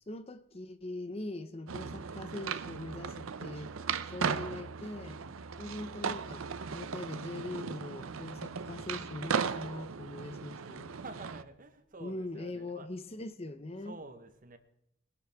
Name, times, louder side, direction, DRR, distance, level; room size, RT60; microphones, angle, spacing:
voice 1, 0.1-3.7 4.0-5.2 5.6-10.9 12.0-14.0, left 2 dB, 30° left, 0.7 m, -42 dB
sound 1, 1.7-11.4, right 6 dB, 90° right, 0.7 m, -37 dB
voice 2, 10.9-12.9 13.8-14.6, right 3 dB, 40° right, 1.1 m, -49 dB
20.0 x 11.0 x 3.5 m
head